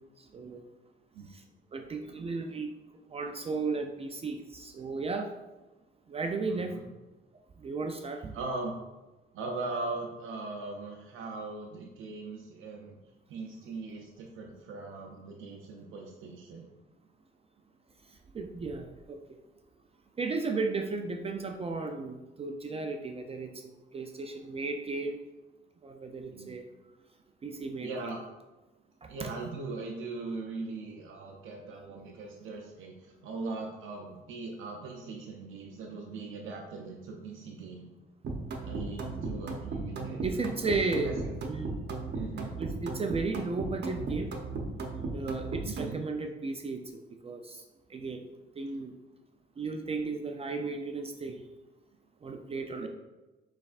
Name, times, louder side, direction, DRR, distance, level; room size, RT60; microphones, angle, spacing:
voice 1, 0.2-0.6 1.3-1.4 1.7-2.7 3.1-5.3 6.1-6.8 7.6-8.3 18.3-19.4 20.2-25.2 25.8-26.6 27.4-28.1 29.0-29.3 38.4-38.7 40.2-41.1 41.4-41.7 42.6-44.3 45.1-47.6 47.9-48.2 48.6-48.9 49.6-51.4 52.2-52.9, right 3 dB, 30° right, 4 dB, 0.4 m, -35 dB
voice 2, 6.5-6.8 8.3-8.8 9.3-13.0 13.3-16.7 26.3-26.5 27.8-28.2 29.1-32.9 33.2-37.9 38.6-41.1 42.1-42.6 45.7-46.0 52.8-52.9, right 3 dB, 85° right, -1 dB, 0.6 m, -40 dB
sound 1, 38.2-46.0, right 3 dB, 60° right, 0.8 m, -36 dB
6.6 x 3.3 x 2.4 m, 1.1 s
cardioid pair, 90°, 20 cm